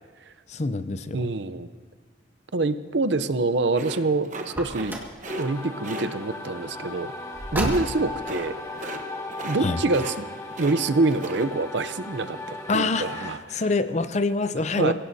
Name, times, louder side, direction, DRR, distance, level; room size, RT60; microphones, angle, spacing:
voice 1, 0.5-1.3 9.6-9.8 12.7-14.9, left 3 dB, 35° left, 11 dB, 0.6 m, -26 dB
voice 2, 1.1-1.7 2.5-5.0 5.4-7.1 7.5-8.6 9.4-10.2 10.6-13.6 14.7-14.9, right 3 dB, 70° right, 13 dB, 0.6 m, -26 dB
sound 1, 3.7-4.9 5.2-5.5 5.8-6.1 7.6-7.9 8.2-8.5 8.7-9.0 9.3-9.6 9.9-10.8 11.1-11.5, right 2 dB, 40° right, 1.1 m, -36 dB
Car, 4.4-5.2 7.3-8.2, right 1 dB, 10° right, 1.8 m, -30 dB
sound 2, 5.3-13.3, left 2 dB, 15° left, 1.2 m, -37 dB
28.0 x 17.0 x 2.8 m, 1.5 s
head